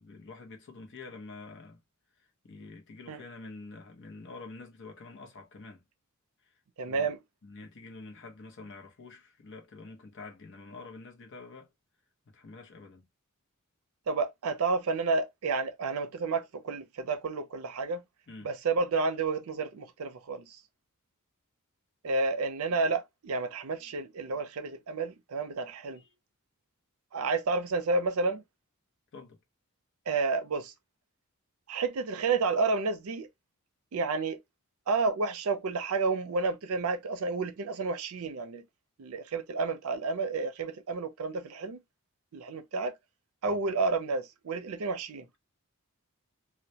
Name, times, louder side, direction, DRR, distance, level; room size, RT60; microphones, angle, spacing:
voice 1, 0.0-1.8 2.4-5.8 6.8-7.1 7.4-11.7 12.3-13.1 18.3-18.5 25.9-26.2 29.1-29.4 43.4-43.6, left 3 dB, 55° left, 0.7 m, -47 dB
voice 2, 6.8-7.2 14.1-18.0 18.4-20.6 22.0-26.0 27.1-28.4 30.1-30.7 31.7-33.3 33.9-34.4 34.9-38.7 39.0-41.8 42.3-42.9 43.4-45.3, right 4 dB, 70° right, 0.5 m, -30 dB
2.2 x 2.1 x 2.7 m
head